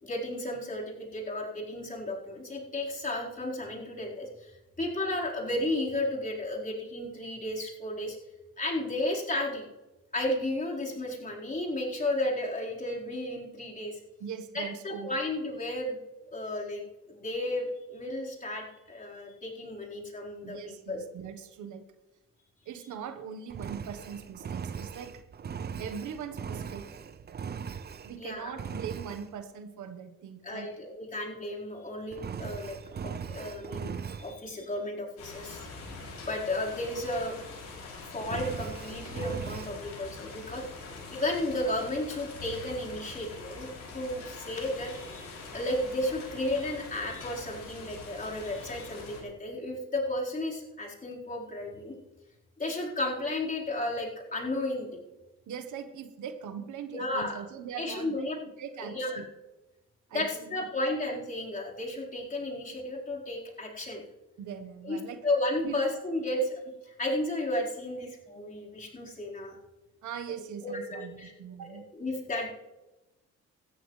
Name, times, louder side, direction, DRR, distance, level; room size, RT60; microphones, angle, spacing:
voice 1, 0.0-4.5 4.8-8.2 8.6-9.6 10.1-14.0 14.5-16.0 16.3-16.8 17.1-21.0 28.2-28.5 30.4-32.8 33.0-35.7 36.2-37.3 38.1-40.6 41.1-43.7 43.9-52.0 52.6-55.0 56.9-57.4 57.8-58.4 58.8-59.3 60.1-64.0 64.8-65.0 65.2-69.6 70.6-71.3 71.7-72.5, left 1 dB, 25° left, -4 dB, 4.4 m, -33 dB
voice 2, 14.2-15.2 17.7-17.9 20.4-21.8 22.6-25.2 25.8-26.9 28.0-30.8 55.5-58.3 58.6-59.3 60.1-60.7 64.4-65.2 65.6-65.8 70.0-71.9, right 7 dB, 75° right, 9 dB, 1.3 m, -41 dB
Engine, 23.5-28.2 28.6-29.3 32.1-34.4 38.2-39.8, right 7 dB, 35° right, 0.6 m, -39 dB
sound 1, 35.2-49.2, left 3 dB, 70° left, 6.2 m, -44 dB
18.0 x 13.5 x 3.3 m, 1.1 s
cardioid pair, 90°, 30 cm